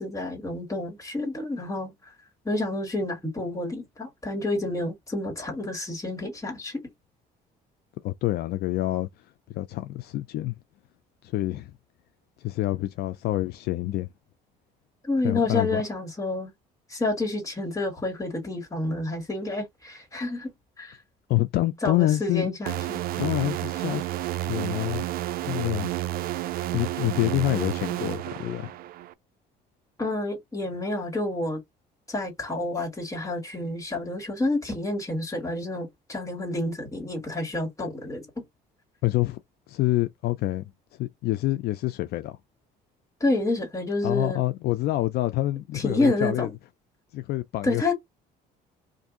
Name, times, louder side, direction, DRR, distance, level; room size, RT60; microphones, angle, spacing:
voice 1, 0.0-1.9 2.5-6.8 15.0-16.5 16.9-20.5 20.8-21.0 21.8-23.0 30.0-31.6 32.1-38.4 43.2-44.4 45.7-46.5 47.6-47.9, left 2 dB, 20° left, 1.8 m, -29 dB
voice 2, 8.0-9.1 9.5-10.5 11.2-11.7 12.4-14.1 15.2-15.8 21.3-22.5 23.2-24.1 24.4-25.0 25.4-25.9 26.7-28.7 39.0-39.4 39.7-40.7 41.0-42.4 44.0-46.5 47.1-47.9, left 16 dB, 70° left, 0.4 m, -27 dB
sound 1, 22.7-29.1, right 14 dB, 60° right, 0.4 m, -31 dB
2.6 x 2.6 x 3.6 m
cardioid pair, 110°, 17 cm